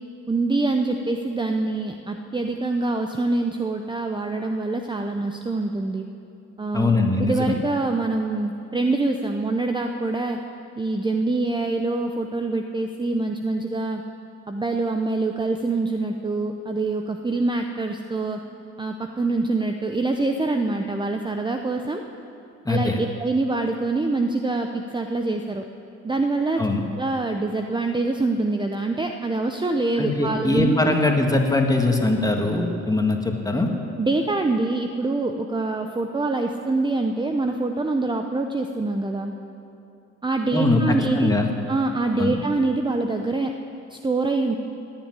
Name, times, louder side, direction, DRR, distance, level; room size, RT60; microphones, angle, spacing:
voice 1, 0.3-6.0 6.6-10.4 10.8-14.0 14.5-18.4 18.8-22.0 22.7-25.6 26.0-26.6 26.9-30.9 34.0-39.3 40.2-41.4 41.7-43.5 43.9-44.5, right 2 dB, 15° right, 4 dB, 0.8 m, -25 dB
voice 2, 6.7-7.5 22.7-23.0 26.6-26.8 30.0-33.7 40.5-41.5 42.2-42.4, left 2 dB, 10° left, 2 dB, 1.9 m, -21 dB
18.0 x 7.2 x 9.8 m, 2.7 s
cardioid pair, 90°, 30 cm